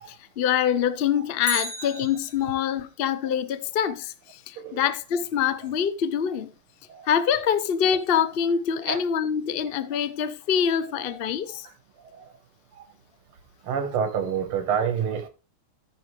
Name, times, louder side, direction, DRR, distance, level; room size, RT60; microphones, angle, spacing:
voice 1, 0.1-6.5 7.1-11.7, left 8 dB, 70° left, 0.5 m, -25 dB
Bicycle, 1.4-2.8 11.1-11.2, equal, 25° left, 3.1 m, -34 dB
voice 2, 13.7-15.3, right 7 dB, 85° right, 2.3 m, -27 dB
14.0 x 6.6 x 3.3 m
omnidirectional pair, 2.3 m